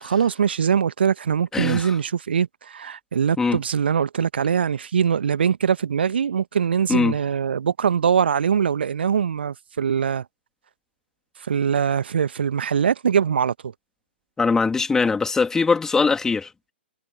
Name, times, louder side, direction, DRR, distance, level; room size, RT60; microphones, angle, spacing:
voice 1, 0.0-10.2 11.5-13.5, right 7 dB, 60° right, 1.2 m, -22 dB
voice 2, 1.5-1.9 3.4-3.6 6.9-7.1 14.4-16.5, left 4 dB, 10° left, 2.7 m, -21 dB
figure-of-eight pair, 120°, 6 cm